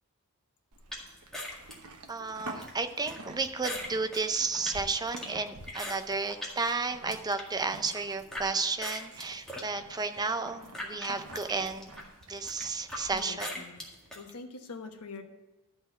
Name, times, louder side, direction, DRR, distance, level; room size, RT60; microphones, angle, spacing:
Livestock farm animals working animals, 0.7-13.2, right 2 dB, 75° right, 1.1 m, -49 dB
sound 1, 0.9-6.6 6.9-8.5 8.8-14.2, left 1 dB, ahead, 1.8 m, -42 dB
voice 1, 2.1-11.9 12.3-13.5, right 4 dB, 20° right, 8 dB, 0.5 m, -32 dB
voice 2, 13.1-13.8 14.1-15.2, left 4 dB, 90° left, 5 dB, 1.1 m, -44 dB
12.5 x 4.3 x 7.0 m, 1.1 s
head